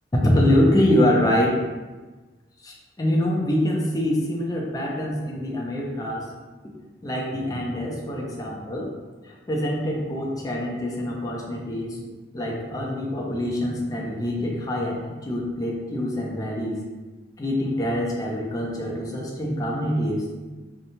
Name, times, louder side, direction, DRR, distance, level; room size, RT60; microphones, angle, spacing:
voice 1, 0.2-1.6 2.6-6.3 7.0-8.9 9.2-12.1 12.3-16.8 17.4-20.3, left 1 dB, 20° left, -2 dB, 0.4 m, -25 dB
2.9 x 2.1 x 2.6 m, 1.3 s
head